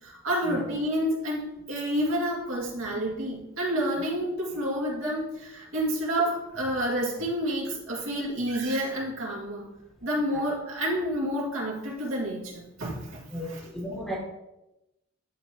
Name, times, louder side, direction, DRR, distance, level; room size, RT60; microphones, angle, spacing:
voice 1, 0.0-9.7 10.0-13.6, equal, 75° right, -4 dB, 2.2 m, -29 dB
voice 2, 13.3-14.2, equal, ahead, -3 dB, 1.3 m, -35 dB
11.0 x 4.8 x 3.0 m, 0.93 s
head